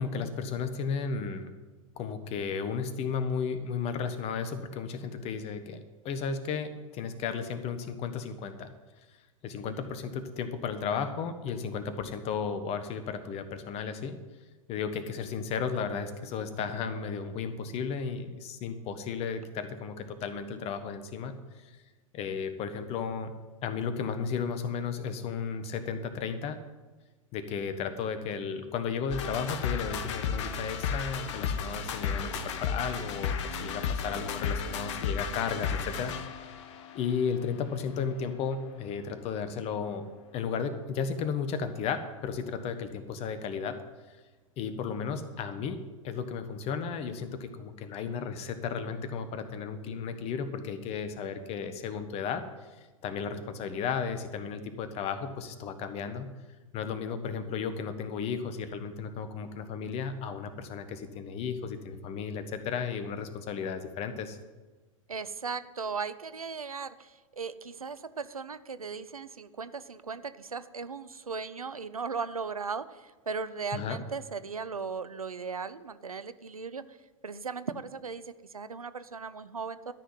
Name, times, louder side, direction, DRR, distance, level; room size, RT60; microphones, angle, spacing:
voice 1, 0.0-1.5 2.0-5.8 6.0-8.7 9.4-14.2 14.7-21.4 22.1-23.3 23.6-26.6 27.3-36.1 36.9-40.0 40.3-43.8 44.6-45.8 46.0-52.4 53.0-56.3 56.7-64.4 73.7-74.0, left 6 dB, 35° left, 10 dB, 1.4 m, -34 dB
sound 1, 29.1-38.5, left 6 dB, 55° left, 1.2 m, -34 dB
voice 2, 65.1-76.8 77.2-78.2 78.5-79.9, right 5 dB, 85° right, 14 dB, 0.7 m, -37 dB
13.0 x 6.3 x 9.2 m, 1.3 s
figure-of-eight pair, 95°, 18 cm